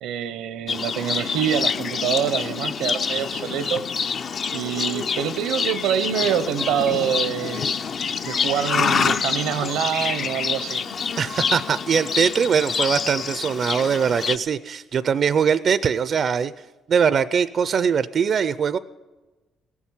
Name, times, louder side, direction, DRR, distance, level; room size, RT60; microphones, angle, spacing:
voice 1, 0.0-3.8 4.5-7.7 8.2-10.9, right 9 dB, 90° right, 14 dB, 0.7 m, -25 dB
Livestock farm animals working animals, 0.7-14.4, left 6 dB, 55° left, 0.6 m, -26 dB
voice 2, 11.2-16.5 16.9-18.8, right 7 dB, 55° right, 15 dB, 0.4 m, -21 dB
17.5 x 7.2 x 9.8 m, 1.2 s
cardioid pair, 80°, 0 cm